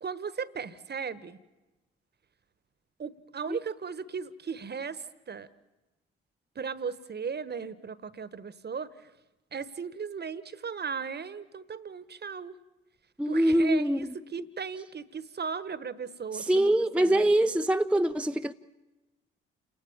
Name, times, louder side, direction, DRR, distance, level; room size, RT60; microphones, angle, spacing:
voice 1, 0.0-1.4 3.0-5.5 6.5-8.9 9.5-12.5 13.3-17.3, right 6 dB, 35° right, 1.3 m, -37 dB
voice 2, 13.2-14.2 16.3-18.5, right 1 dB, 5° right, 0.7 m, -24 dB
29.0 x 18.5 x 7.3 m
figure-of-eight pair, 45°, 30 cm